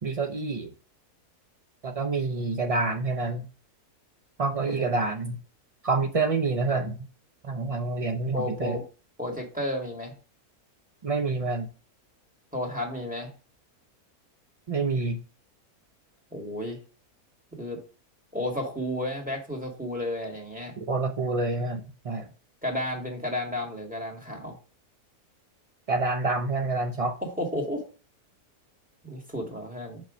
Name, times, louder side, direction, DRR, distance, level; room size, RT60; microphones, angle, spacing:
voice 1, 0.0-0.7 1.8-3.5 4.4-5.4 5.8-7.0 7.4-8.8 11.0-11.7 14.7-15.2 20.8-22.3 25.9-27.2, right 3 dB, 65° right, 0.3 m, -27 dB
voice 2, 8.3-8.9 9.2-10.1 12.5-13.3 16.3-16.8 17.6-17.9 18.3-20.7 22.6-24.5 27.2-27.9 29.0-30.0, left 1 dB, 5° right, 1.9 m, -32 dB
5.7 x 5.6 x 5.0 m
omnidirectional pair, 1.6 m